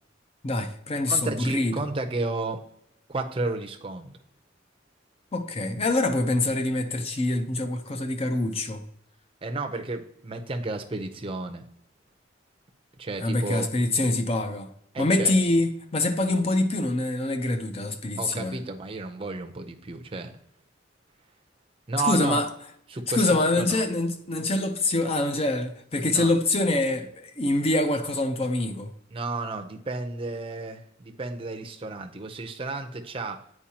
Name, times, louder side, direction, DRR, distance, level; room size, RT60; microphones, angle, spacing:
voice 1, 0.4-1.7 5.3-8.8 13.2-14.7 15.0-18.6 22.0-22.5 23.1-28.9, left 2 dB, 30° left, 0.6 m, -25 dB
voice 2, 1.1-2.6 3.1-4.1 9.4-11.6 13.0-13.7 14.9-15.3 18.2-20.3 21.9-22.4 22.9-23.8 26.1-26.3 29.1-33.4, right 3 dB, 30° right, 0.6 m, -32 dB
8.7 x 4.6 x 2.9 m
head